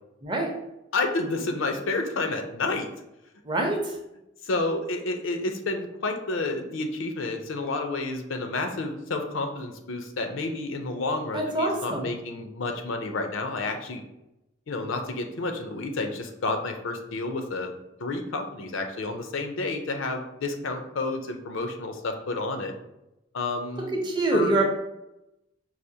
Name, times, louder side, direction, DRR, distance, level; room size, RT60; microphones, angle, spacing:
voice 1, 0.9-2.9 4.4-14.0 14.7-17.7 18.0-22.7 23.3-24.0 24.3-24.6, left 3 dB, 75° left, 5 dB, 0.5 m, -30 dB
voice 2, 3.4-3.9 11.3-12.1 23.9-24.6, right 2 dB, 20° right, 1 dB, 0.5 m, -25 dB
4.8 x 2.5 x 2.7 m, 0.90 s
head